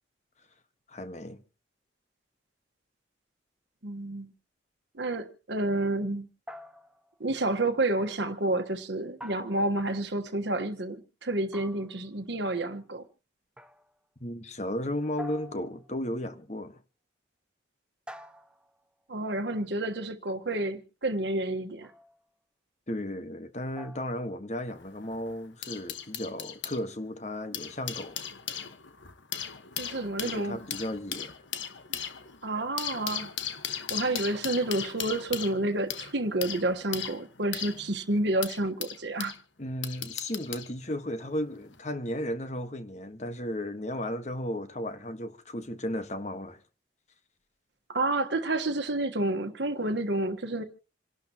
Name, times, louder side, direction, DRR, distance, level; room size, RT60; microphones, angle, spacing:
voice 1, 0.9-1.4 14.2-16.8 22.9-28.2 30.2-31.3 39.6-46.6, left 1 dB, 35° left, 1.4 m, -34 dB
voice 2, 3.8-4.3 4.9-6.3 7.2-13.0 19.1-21.9 29.8-30.6 32.4-33.3 33.9-39.3 47.9-50.6, right 2 dB, 65° right, 1.3 m, -29 dB
sound 1, 6.5-7.2 9.2-10.1 11.5-12.1 13.6-14.0 15.2-16.1 18.1-18.9 21.8-22.2 23.7-24.3, equal, 5° right, 0.8 m, -46 dB
sound 2, 24.7-26.8 27.4-39.4 39.8-40.7 41.6-41.8, left 9 dB, 75° left, 1.3 m, -37 dB
27.5 x 12.0 x 2.9 m
head